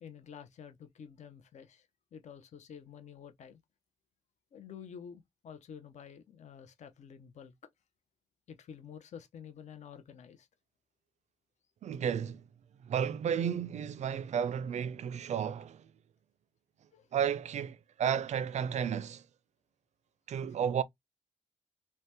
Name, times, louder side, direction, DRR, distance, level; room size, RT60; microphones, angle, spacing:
voice 1, 0.0-3.6 4.5-7.5 8.5-10.5 16.9-17.1, left 7 dB, 60° left, 0.5 m, -50 dB
voice 2, 11.8-12.5 12.8-15.9 17.1-19.3 20.3-20.8, right 8 dB, 60° right, 0.4 m, -32 dB
2.7 x 2.1 x 3.3 m
cardioid pair, 65°, 13 cm